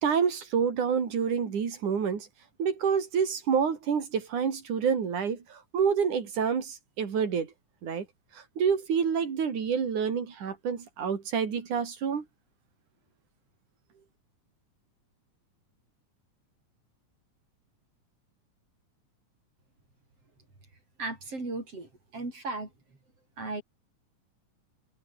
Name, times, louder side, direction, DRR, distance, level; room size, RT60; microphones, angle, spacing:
voice 1, 0.0-2.3 2.6-7.5 7.8-8.1 8.6-12.2, right 6 dB, 70° right, 4.6 m, -28 dB
voice 2, 21.0-22.7 23.4-23.6, right 3 dB, 45° right, 8.7 m, -36 dB
omnidirectional pair, 3.6 m